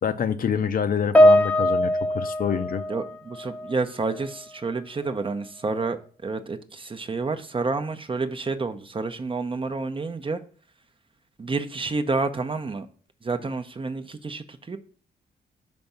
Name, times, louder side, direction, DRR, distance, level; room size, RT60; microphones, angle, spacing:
voice 1, 0.0-2.8, left 7 dB, 50° left, 0.6 m, -26 dB
Piano, 1.2-3.8 4.1-4.4 5.2-5.3, equal, 5° left, 0.7 m, -21 dB
voice 2, 2.9-6.0 6.2-10.4 11.4-12.9 13.2-14.8, right 3 dB, 30° right, 0.7 m, -29 dB
5.2 x 3.5 x 5.5 m
cardioid pair, 65°, 18 cm